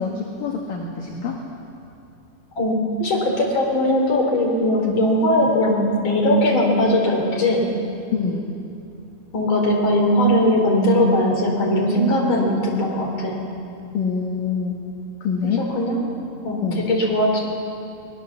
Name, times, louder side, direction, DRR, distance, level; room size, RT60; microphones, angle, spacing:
voice 1, 0.0-1.4 4.9-5.0 8.1-8.5 13.9-14.8 15.2-15.7 16.6-16.9, left 5 dB, 60° left, 0 dB, 2.6 m, -25 dB
voice 2, 2.6-7.6 9.3-13.4 15.4-16.0 16.4-17.4, left 1 dB, 25° left, -1 dB, 3.9 m, -19 dB
22.5 x 20.0 x 7.2 m, 2.6 s
omnidirectional pair, 5.5 m